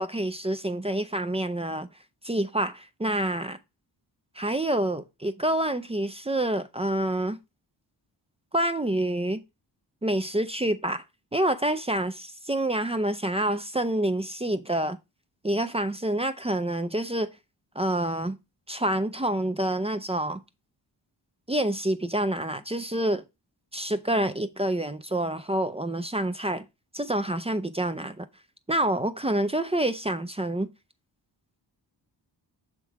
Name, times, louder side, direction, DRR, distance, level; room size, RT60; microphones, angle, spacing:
voice 1, 0.0-1.9 2.2-3.6 4.4-7.4 8.5-9.4 10.0-11.0 11.3-15.0 15.4-17.3 17.7-18.4 18.7-20.4 21.5-23.2 23.7-26.6 26.9-28.3 28.7-30.7, right 1 dB, 15° right, 0.6 m, -27 dB
6.0 x 3.8 x 4.7 m
cardioid pair, 55°, 44 cm